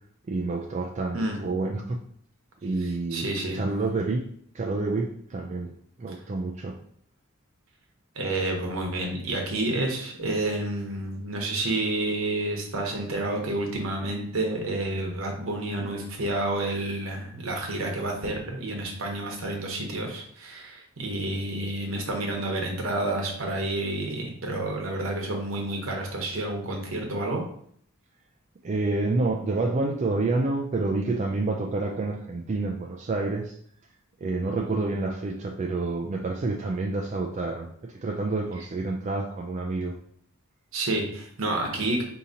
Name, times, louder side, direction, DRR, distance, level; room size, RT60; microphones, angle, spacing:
voice 1, 0.3-2.0 2.6-3.3 3.5-4.2 4.5-5.7 6.0-6.8 28.6-33.6 34.2-40.0, right 3 dB, 35° right, 0 dB, 0.4 m, -28 dB
voice 2, 2.8-3.6 8.2-27.4 40.7-42.0, right 2 dB, 70° right, 1 dB, 1.0 m, -29 dB
5.0 x 2.8 x 2.7 m, 0.63 s
head